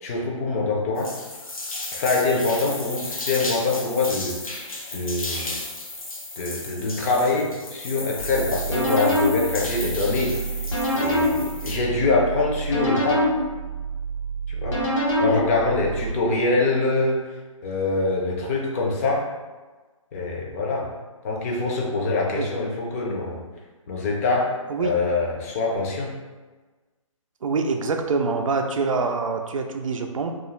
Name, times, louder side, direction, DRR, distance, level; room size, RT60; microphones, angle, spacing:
voice 1, 0.0-1.1 1.9-4.6 4.9-5.6 6.4-10.3 10.9-13.2 14.6-14.8 15.2-17.3 17.6-19.3 20.1-20.9 21.2-23.4 23.9-24.5 24.8-26.1, left 3 dB, 25° left, -2 dB, 0.5 m, -24 dB
sound 1, 1.0-11.8, left 2 dB, 90° left, 0.5 m, -34 dB
sound 2, 8.2-16.1, right 1 dB, 65° left, 1.1 m, -26 dB
voice 2, 27.4-30.3, right 4 dB, 75° right, 4 dB, 0.4 m, -25 dB
2.4 x 2.3 x 3.0 m, 1.3 s
figure-of-eight pair, 140°, 17 cm